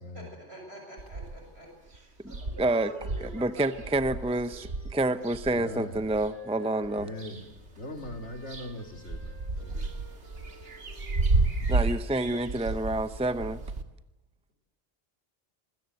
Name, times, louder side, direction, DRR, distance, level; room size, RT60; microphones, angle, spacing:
voice 1, 0.1-3.7 4.5-4.6 6.6-7.1 9.5-9.6, right 1 dB, 65° right, 1 dB, 7.4 m, -46 dB
sound 1, 1.0-1.6 1.9-2.0 2.2-6.3 6.8-7.7 8.0-13.8, right 3 dB, 90° right, 2.3 m, -32 dB
Wind instrument woodwind instrument, 2.2-7.2 7.9-12.9, equal, 10° left, 5.7 m, -56 dB
voice 2, 2.6-2.9 3.3-4.6 4.9-7.1 11.7-13.6, right 2 dB, 5° right, 12 dB, 0.7 m, -28 dB
voice 3, 5.5-6.2 6.9-9.9, left 1 dB, 90° left, 6 dB, 3.0 m, -41 dB
26.5 x 21.0 x 7.9 m, 0.97 s
omnidirectional pair, 1.1 m